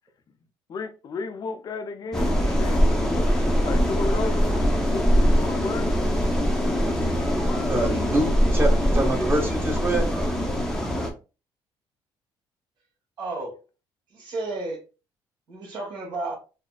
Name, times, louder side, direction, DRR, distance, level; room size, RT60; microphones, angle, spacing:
voice 1, 0.7-3.3 3.6-4.5 4.8-5.9, left 4 dB, 45° left, 0.6 m, -33 dB
sound 1, 2.1-11.1, equal, 5° left, 0.8 m, -22 dB
voice 2, 7.7-10.1, right 1 dB, 25° right, 1.4 m, -25 dB
voice 3, 13.2-13.6 14.1-14.8 15.5-16.3, right 2 dB, 55° right, 1.6 m, -32 dB
4.1 x 2.1 x 2.3 m
cardioid pair, 100°, 9 cm